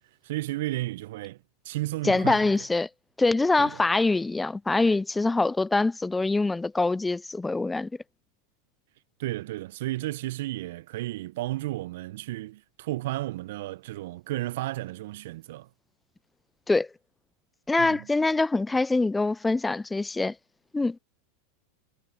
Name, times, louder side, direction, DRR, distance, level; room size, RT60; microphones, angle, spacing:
voice 1, 0.2-1.4 1.6-2.5 3.6-3.8 9.2-15.7 17.8-18.1, right 17 dB, 65° right, 1.1 m, -33 dB
voice 2, 2.0-2.9 3.2-7.9 16.7-16.9 17.7-20.4 20.7-21.0, left 3 dB, 10° left, 0.5 m, -24 dB
hypercardioid pair, 90°, 0 cm